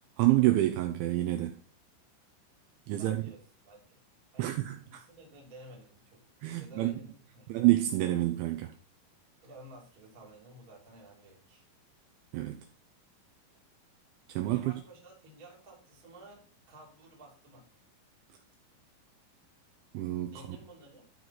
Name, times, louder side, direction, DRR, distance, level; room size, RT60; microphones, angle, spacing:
voice 1, 0.2-1.6 2.9-3.2 4.4-5.0 6.4-6.9 7.5-8.7 12.3-12.7 14.3-14.8 19.9-20.3, right 16 dB, 85° right, 2.7 m, -28 dB
voice 2, 3.0-4.0 4.3-6.2 6.6-7.5 9.4-11.7 14.5-17.7 20.3-21.1, right 1 dB, 40° right, 1.3 m, -53 dB
12.5 x 4.7 x 4.0 m
omnidirectional pair, 5.9 m